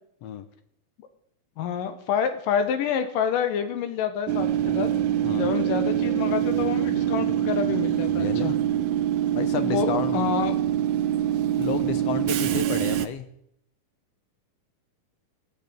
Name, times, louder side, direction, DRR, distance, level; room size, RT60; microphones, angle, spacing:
voice 1, 1.6-4.9 5.4-8.5 9.5-10.6, left 8 dB, 85° left, 8 dB, 2.8 m, -28 dB
Train / Subway metro underground, 4.3-13.1, right 11 dB, 70° right, 2.0 m, -24 dB
voice 2, 5.2-5.5 8.2-8.5 9.3-10.2 11.5-13.3, left 8 dB, 65° left, 11 dB, 1.7 m, -31 dB
15.0 x 8.1 x 8.9 m, 0.73 s
omnidirectional pair, 3.8 m